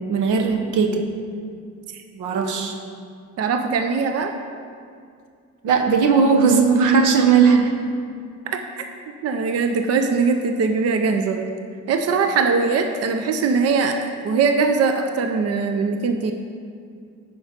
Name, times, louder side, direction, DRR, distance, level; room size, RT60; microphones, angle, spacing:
voice 1, 0.1-1.0 2.1-2.8 5.6-7.7, right 5 dB, 85° right, 4 dB, 0.9 m, -17 dB
voice 2, 3.4-4.3 8.5-8.8 9.2-11.5 11.9-16.3, right 4 dB, 55° right, 6 dB, 0.6 m, -21 dB
9.2 x 5.3 x 5.1 m, 2.2 s
cardioid pair, 90°, 30 cm